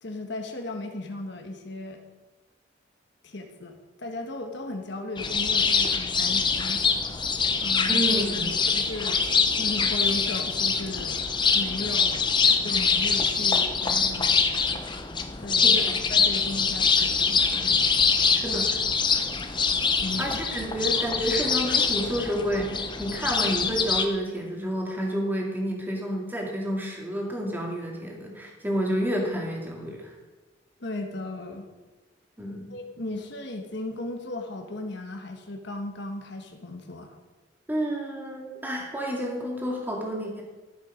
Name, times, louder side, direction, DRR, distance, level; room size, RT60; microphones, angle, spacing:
voice 1, 0.0-2.0 3.2-6.8 7.6-8.0 8.5-11.2 11.5-12.3 12.6-14.3 15.4-17.8 18.5-18.6 20.0-20.4 30.8-31.7 32.7-37.1, left 2 dB, 65° left, 4 dB, 1.3 m, -36 dB
sound 1, 5.2-24.1, left 5 dB, 25° left, 0.8 m, -24 dB
voice 2, 7.9-8.5 15.6-15.8 18.3-18.7 20.2-30.1 32.4-32.7 37.7-40.4, equal, 10° right, -1 dB, 2.2 m, -30 dB
13.5 x 7.5 x 5.1 m, 1.2 s
head